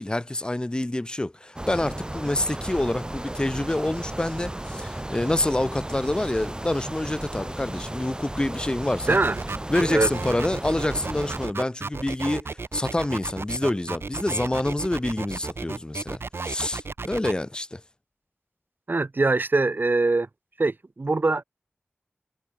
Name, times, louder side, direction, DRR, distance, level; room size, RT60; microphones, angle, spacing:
voice 1, 0.0-9.2 9.7-17.8, left 1 dB, 20° left, 0.6 m, -27 dB
sound 1, 1.6-11.5, right 1 dB, 20° right, 2.0 m, -34 dB
sound 2, 9.1-17.3, right 4 dB, 85° right, 1.5 m, -33 dB
voice 2, 18.9-20.3 20.6-21.4, right 3 dB, 55° right, 1.0 m, -23 dB
wide cardioid pair, 50°, 4 cm